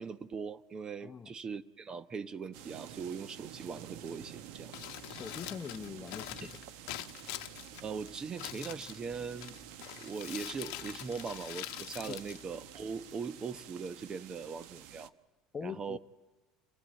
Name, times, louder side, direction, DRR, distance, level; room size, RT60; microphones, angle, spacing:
voice 1, 0.0-4.7 6.4-6.5 7.8-9.6 10.0-15.1 15.6-16.0, right 5 dB, 35° right, 0.9 m, -40 dB
voice 2, 1.0-1.3 5.1-6.5 12.1-12.2 15.5-16.0, left 6 dB, 30° left, 0.7 m, -42 dB
sound 1, 2.5-15.1, right 11 dB, 75° right, 0.9 m, -50 dB
Crumpling crinkling, 4.6-13.2, left 17 dB, 75° left, 0.8 m, -45 dB
28.0 x 15.5 x 9.3 m
supercardioid pair, 95°, 2 cm